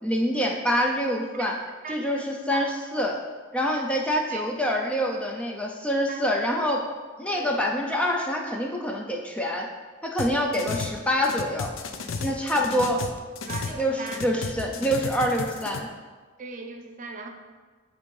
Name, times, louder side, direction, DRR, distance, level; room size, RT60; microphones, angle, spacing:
voice 1, 0.0-1.5 1.9-3.2 3.5-6.8 7.2-9.7 10.0-11.7 12.2-13.0 13.8-15.9, equal, 5° left, 0 dB, 0.4 m, -26 dB
voice 2, 1.8-2.2 2.5-2.7 3.7-3.9 4.3-4.4 6.1-6.2 7.2-7.6 12.2-12.5 13.4-14.2 16.4-17.3, right 4 dB, 40° right, 3 dB, 0.6 m, -39 dB
sound 1, 10.2-11.0 11.2-13.8 14.1-15.8, left 4 dB, 80° left, 0.5 m, -33 dB
7.9 x 2.7 x 5.4 m, 1.4 s
head